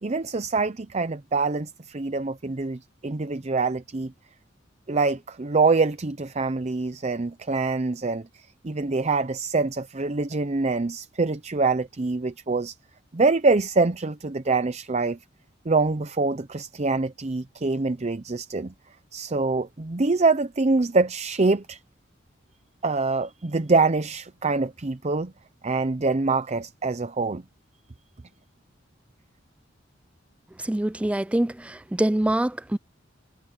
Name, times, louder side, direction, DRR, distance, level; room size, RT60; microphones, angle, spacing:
voice 1, 0.0-4.1 4.9-12.8 13.1-15.2 15.6-18.7 19.1-21.8 22.8-25.3 25.6-27.4, right 3 dB, 35° right, 0.7 m, -25 dB
voice 2, 30.6-32.8, right 1 dB, 5° right, 0.3 m, -25 dB
head